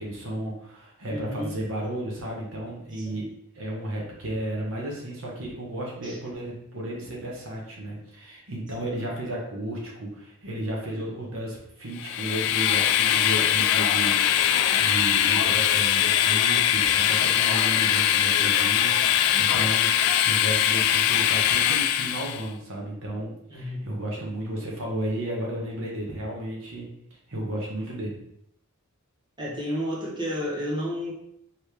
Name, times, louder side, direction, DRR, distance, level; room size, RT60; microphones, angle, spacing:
voice 1, 0.0-26.9 27.3-28.2, right 1 dB, 60° right, -2 dB, 1.1 m, -33 dB
voice 2, 1.1-1.5 2.9-3.2 6.0-6.2 23.5-23.8 29.4-31.1, equal, 20° right, -5 dB, 1.1 m, -31 dB
Train, 12.0-22.4, left 10 dB, 75° left, 0.3 m, -22 dB
4.7 x 3.2 x 3.4 m, 0.74 s
head